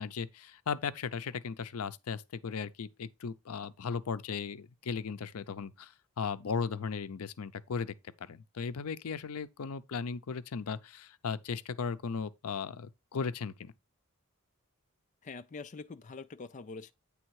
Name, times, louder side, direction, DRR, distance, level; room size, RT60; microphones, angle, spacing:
voice 1, 0.0-13.7, left 5 dB, 80° left, 0.5 m, -37 dB
voice 2, 15.2-16.9, left 4 dB, 35° left, 0.4 m, -44 dB
8.9 x 3.5 x 4.6 m
head